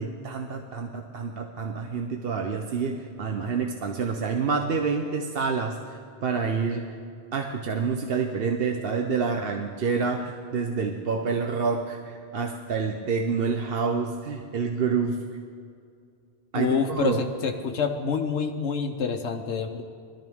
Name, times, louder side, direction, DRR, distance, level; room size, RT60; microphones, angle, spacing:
voice 1, 0.0-7.0 7.3-15.2 16.5-17.2, right 5 dB, 60° right, 3 dB, 1.0 m, -28 dB
voice 2, 16.5-19.8, left 5 dB, 90° left, 4 dB, 1.1 m, -27 dB
20.5 x 13.0 x 3.6 m, 2.4 s
omnidirectional pair, 1.1 m